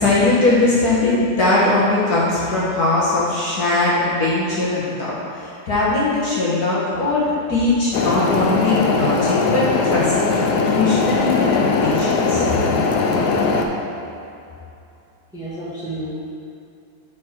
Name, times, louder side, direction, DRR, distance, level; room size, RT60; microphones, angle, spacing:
voice 1, 0.0-12.4, left 2 dB, 50° left, -8 dB, 1.7 m, -20 dB
sound 1, 7.9-13.7, left 4 dB, 75° left, 0.9 m, -19 dB
voice 2, 15.3-16.1, right 1 dB, ahead, -9 dB, 1.2 m, -31 dB
7.1 x 4.8 x 4.4 m, 2.6 s
omnidirectional pair, 2.2 m